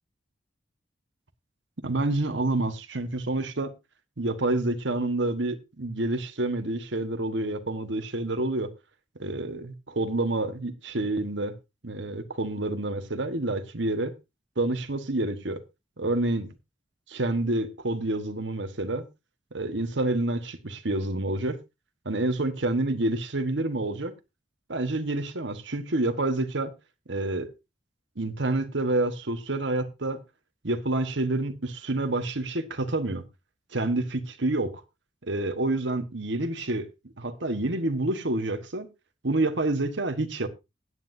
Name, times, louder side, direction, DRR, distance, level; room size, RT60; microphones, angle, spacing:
voice 1, 1.8-3.7 4.2-8.7 9.2-11.5 11.8-14.1 14.6-15.6 16.0-16.5 17.1-19.0 19.5-21.6 22.0-24.1 24.7-26.7 27.1-27.5 28.2-30.2 30.6-33.2 33.7-34.7 35.2-36.9 37.2-38.9 39.2-40.5, right 2 dB, 75° right, 1.4 m, -28 dB
16.0 x 9.5 x 2.7 m
head